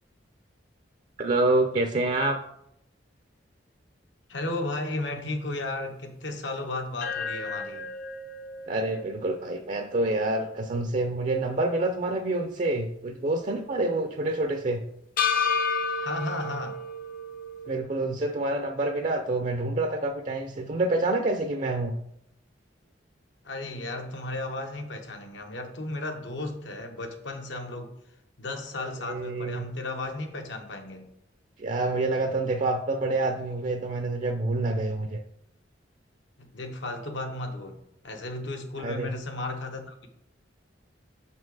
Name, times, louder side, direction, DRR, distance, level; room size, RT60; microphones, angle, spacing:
voice 1, 1.2-2.4 8.7-14.8 17.7-21.9 29.1-29.6 31.6-35.2 38.8-39.1, right 2 dB, 40° right, 5 dB, 0.5 m, -27 dB
voice 2, 4.3-7.9 16.0-16.8 23.4-27.9 28.4-31.1 36.4-37.8 38.0-40.1, left 2 dB, 75° left, 4 dB, 1.0 m, -34 dB
sound 1, 7.0-11.3 11.7-11.8 15.2-17.8, left 5 dB, 50° left, 0.6 m, -32 dB
6.7 x 4.2 x 4.7 m, 0.79 s
head